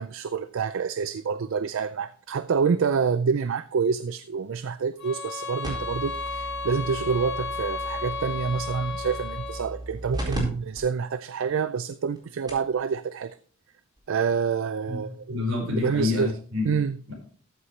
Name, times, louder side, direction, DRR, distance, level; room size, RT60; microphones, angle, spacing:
voice 1, 0.0-13.4 14.1-15.4 15.8-16.3 16.7-17.0, right 6 dB, 65° right, 0.4 m, -27 dB
sound 1, 5.0-9.8, left 4 dB, 60° left, 1.8 m, -34 dB
sound 2, 5.6-10.4 10.8-10.9 11.5-11.6 12.2-12.3 12.5-12.7 14.0-14.1, right 1 dB, 20° right, 4.4 m, -36 dB
voice 2, 15.3-16.7 17.1-17.2, left 3 dB, 85° right, 5.2 m, -28 dB
14.0 x 7.8 x 3.2 m
head